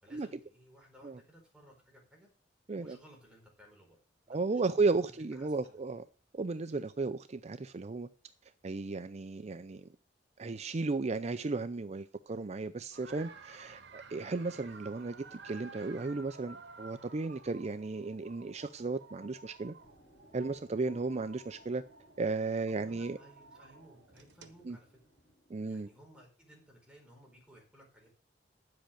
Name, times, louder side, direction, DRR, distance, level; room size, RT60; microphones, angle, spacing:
voice 1, 0.0-2.3 2.7-4.0 4.3-5.8 22.7-24.9 25.6-28.1, equal, 5° right, 0 dB, 4.9 m, -59 dB
voice 2, 4.3-6.0 6.3-8.1 8.6-9.9 10.4-19.7 20.3-21.8 22.2-23.2 24.7-24.8 25.5-25.9, right 3 dB, 40° right, 12 dB, 0.5 m, -34 dB
sound 1, 12.9-25.3, right 4 dB, 75° right, 1.4 m, -54 dB
sound 2, 19.8-26.2, equal, 40° left, 4.3 m, -65 dB
10.5 x 7.8 x 6.4 m, 0.36 s
head